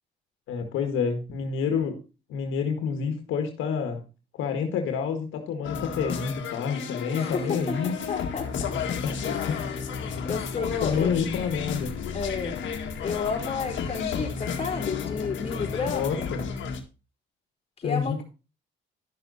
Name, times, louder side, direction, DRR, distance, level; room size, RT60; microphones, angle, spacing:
voice 1, 0.5-2.0 2.3-4.0 4.4-8.0 9.0-9.2 9.5-9.6 10.8-11.9 15.9-16.4 17.8-18.2, left 6 dB, 85° left, 5 dB, 1.8 m, -28 dB
sound 1, 5.6-16.8, left 6 dB, 70° left, 1.9 m, -32 dB
voice 2, 7.1-8.7 9.2-11.1 12.1-12.6 13.0-16.3 17.8-18.2, left 5 dB, 30° left, 0 dB, 4.2 m, -32 dB
12.0 x 6.3 x 4.1 m, 0.31 s
cardioid pair, 90°, 20 cm